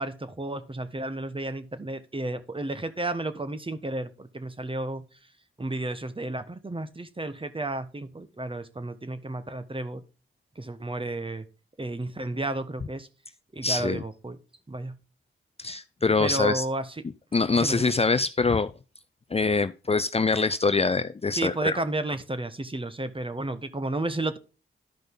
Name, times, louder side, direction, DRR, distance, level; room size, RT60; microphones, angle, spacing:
voice 1, 0.0-5.0 5.6-10.0 10.6-11.4 11.8-13.1 13.5-14.4 14.7-14.9 16.2-17.0 17.5-17.9 21.3-24.4, right 2 dB, 25° right, 1.3 m, -32 dB
voice 2, 13.6-14.0 15.6-16.6 17.3-18.7 19.3-21.8, left 4 dB, 30° left, 0.5 m, -24 dB
12.0 x 5.2 x 3.8 m
cardioid pair, 50°, 21 cm